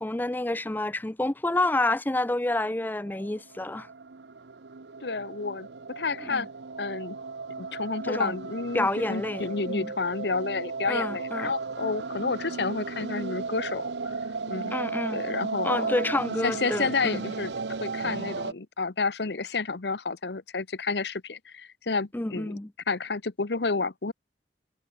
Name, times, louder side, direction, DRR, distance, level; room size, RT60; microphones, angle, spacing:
voice 1, 0.0-3.9 6.3-6.4 8.1-8.3 8.7-9.9 10.9-11.5 14.7-15.2 15.6-17.2 22.1-22.7, left 2 dB, 10° left, 0.4 m, -28 dB
sound 1, 3.0-18.5, right 4 dB, 85° right, 0.8 m, -35 dB
voice 2, 5.0-5.7 6.0-6.5 6.8-7.2 7.6-14.2 14.5-14.7 15.1-16.0 16.4-22.6 22.9-24.1, left 4 dB, 75° left, 1.0 m, -30 dB
head